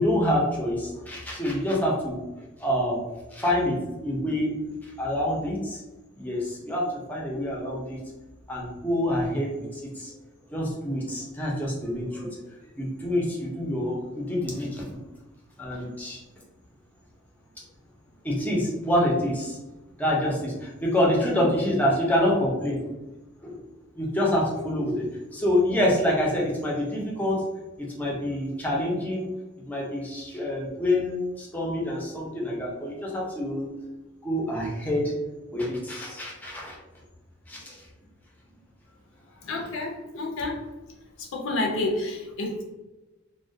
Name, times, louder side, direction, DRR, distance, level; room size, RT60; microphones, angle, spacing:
voice 1, 0.0-2.2 2.6-3.0 3.3-4.5 4.8-5.8 6.2-8.0 8.5-10.1 10.5-12.3 12.8-15.0 15.6-16.2 18.2-19.6 20.0-22.8 23.4-23.6 24.0-25.1 25.3-27.4 27.8-29.3 29.6-33.7 34.2-35.1 35.5-36.8 37.5-37.9, left 1 dB, 10° left, -3 dB, 0.5 m, -26 dB
voice 2, 39.4-40.6 41.2-42.6, left 2 dB, 70° left, 0 dB, 0.4 m, -29 dB
2.2 x 2.1 x 2.6 m, 1.1 s
head